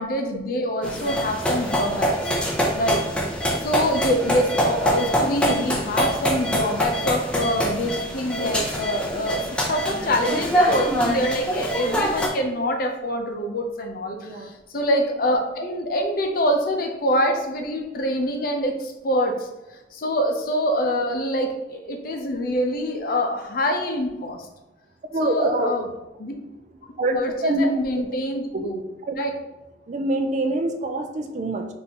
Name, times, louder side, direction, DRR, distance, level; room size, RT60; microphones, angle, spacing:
voice 1, 0.0-2.3 2.8-3.0 3.6-19.5 19.9-24.4 25.2-25.9 26.2-26.3 27.1-28.8 29.2-29.3, equal, 55° left, 3 dB, 0.6 m, -25 dB
sound 1, 0.8-12.3, equal, 5° left, 0.5 m, -24 dB
voice 2, 14.1-14.5 25.1-25.7 27.0-27.7 28.1-28.2 28.5-28.7 29.1-29.2 29.9-31.7, right 2 dB, 40° right, 5 dB, 0.4 m, -25 dB
5.1 x 2.6 x 2.9 m, 1.0 s
head